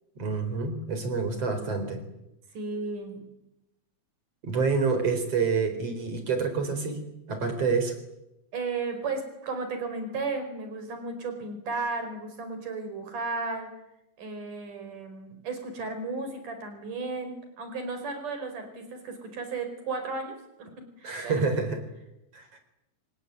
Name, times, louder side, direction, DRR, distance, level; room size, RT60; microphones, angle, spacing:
voice 1, 0.2-2.0 4.4-7.0 7.3-8.0 21.0-21.8 22.3-22.6, right 4 dB, 45° right, 8 dB, 5.2 m, -27 dB
voice 2, 2.5-3.2 8.5-13.7 14.2-20.7 21.0-21.5, right 3 dB, 60° right, 7 dB, 6.4 m, -34 dB
26.5 x 22.0 x 9.4 m, 0.89 s
omnidirectional pair, 4.1 m